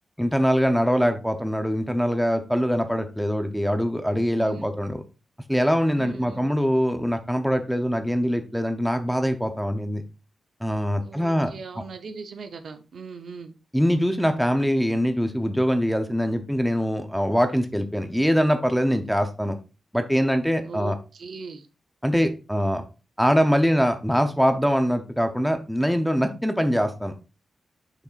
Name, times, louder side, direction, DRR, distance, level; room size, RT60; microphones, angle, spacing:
voice 1, 0.2-5.0 5.5-10.0 10.6-11.5 13.7-19.6 19.9-20.9 22.0-22.8 23.2-27.1, equal, ahead, 7 dB, 0.7 m, -23 dB
voice 2, 4.4-4.7 6.0-6.5 11.0-13.5 20.7-21.7, right 5 dB, 60° right, 8 dB, 0.7 m, -39 dB
6.8 x 5.9 x 2.4 m, 0.31 s
wide cardioid pair, 140°, 0 cm